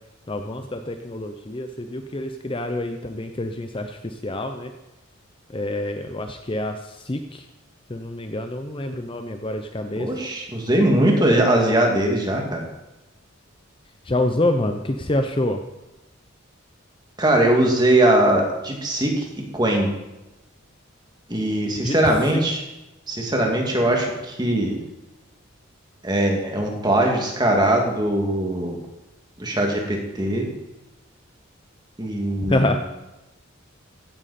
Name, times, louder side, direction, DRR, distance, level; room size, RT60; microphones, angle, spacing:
voice 1, 0.3-4.7 5.5-7.4 7.9-10.1 14.0-15.6 21.8-22.0 22.3-22.4 32.5-32.8, left 1 dB, 25° left, 6 dB, 0.7 m, -26 dB
voice 2, 10.0-12.6 17.2-19.3 19.5-19.9 21.3-22.6 23.1-24.8 26.0-28.8 29.4-30.5 32.0-32.8, right 1 dB, 20° right, 1 dB, 2.3 m, -20 dB
15.0 x 10.5 x 4.3 m, 0.97 s
head